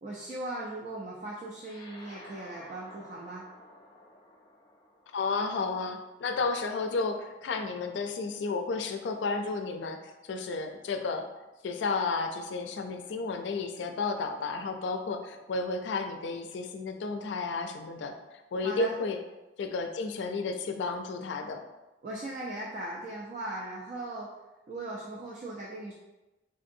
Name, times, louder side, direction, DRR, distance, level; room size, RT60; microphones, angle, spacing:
voice 1, 0.0-3.4 18.6-18.9 22.0-24.3 24.7-25.9, right 1 dB, 40° right, -4 dB, 0.4 m, -38 dB
sound 1, 1.6-6.3, left 1 dB, 25° left, 0.4 m, -53 dB
voice 2, 5.1-11.3 11.6-19.2 19.6-21.6, left 3 dB, 85° left, 6 dB, 0.4 m, -32 dB
3.7 x 2.7 x 2.5 m, 1.1 s
head